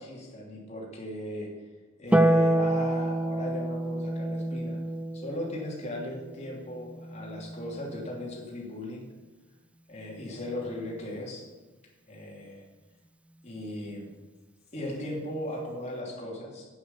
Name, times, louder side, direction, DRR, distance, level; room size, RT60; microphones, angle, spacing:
voice 1, 0.0-1.5 2.0-4.8 5.1-9.0 9.9-11.4 12.1-12.6 13.4-14.2 14.7-16.7, left 1 dB, 35° left, -2 dB, 2.8 m, -37 dB
Harp, 2.1-8.6 10.3-11.2, right 1 dB, 5° right, 0.4 m, -29 dB
9.0 x 8.0 x 7.1 m, 1.2 s
head